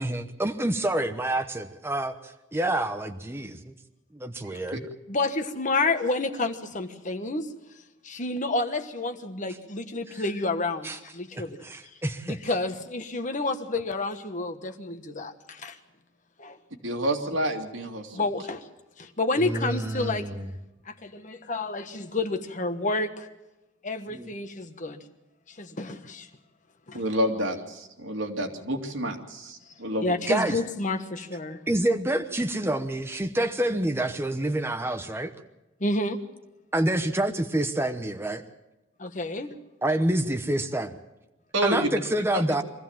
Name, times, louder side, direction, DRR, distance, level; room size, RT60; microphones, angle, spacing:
voice 1, 0.0-3.7 4.1-4.9 10.1-10.2 10.8-11.0 11.3-12.4 19.4-20.5 24.1-24.3 30.3-30.6 31.7-35.3 36.7-38.4 39.8-41.0 41.6-42.6, right 1 dB, 15° right, 7 dB, 0.9 m, -27 dB
voice 2, 5.1-7.5 8.0-11.6 12.3-15.8 16.4-16.6 18.1-18.7 19.0-20.3 20.9-23.3 23.8-25.0 25.5-26.3 26.9-27.0 30.0-31.6 35.8-36.2 39.0-39.5, left 2 dB, 40° left, 7 dB, 1.3 m, -29 dB
voice 3, 16.8-18.2 26.9-30.2 41.5-42.0 42.3-42.4, equal, 90° right, 2 dB, 2.6 m, -29 dB
23.5 x 15.0 x 7.4 m, 0.98 s
head